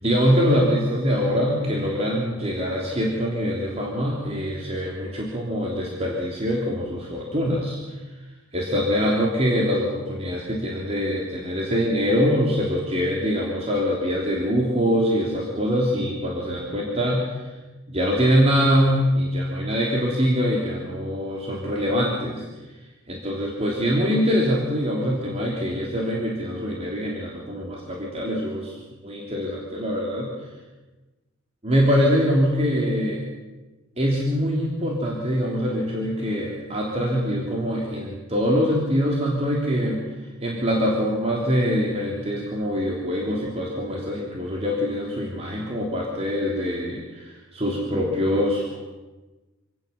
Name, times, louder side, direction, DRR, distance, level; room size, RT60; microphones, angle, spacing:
voice 1, 0.0-7.8 8.5-17.5 17.9-22.5 23.1-30.5 31.6-33.2 34.0-48.8, equal, 30° right, -2 dB, 3.4 m, -24 dB
27.0 x 17.5 x 7.2 m, 1.2 s
head